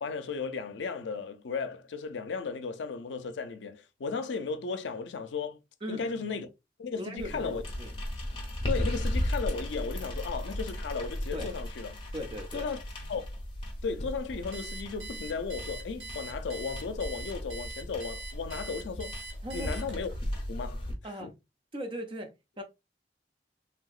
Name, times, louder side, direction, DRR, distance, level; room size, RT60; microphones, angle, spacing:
voice 1, 0.0-5.6 5.9-6.5 6.8-7.6 8.7-12.0 12.5-12.8 13.1-13.2 13.8-19.2 19.5-20.1 20.5-20.9 21.2-21.3, left 5 dB, 90° left, 0.5 m, -35 dB
voice 2, 5.8-6.1 6.9-7.9 11.3-11.5 12.1-12.7 19.4-19.7 21.0-21.3 21.7-22.6, equal, 30° right, 0.6 m, -39 dB
sound 1, 7.2-20.9, equal, 30° left, 0.8 m, -36 dB
Alarm, 14.5-20.2, right 3 dB, 70° right, 1.1 m, -43 dB
3.3 x 2.8 x 2.3 m
head